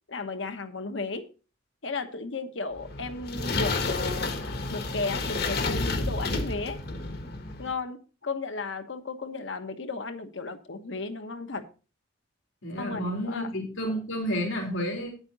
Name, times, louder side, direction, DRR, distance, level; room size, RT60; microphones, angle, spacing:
voice 1, 0.1-1.3 1.8-6.8 7.6-11.6 12.8-13.5, left 3 dB, 70° left, 8 dB, 1.2 m, -34 dB
sound 1, 2.8-7.7, left 3 dB, 50° left, 1.3 m, -30 dB
voice 2, 12.6-15.1, equal, 85° left, 0 dB, 3.4 m, -30 dB
9.6 x 8.7 x 4.0 m, 0.35 s
head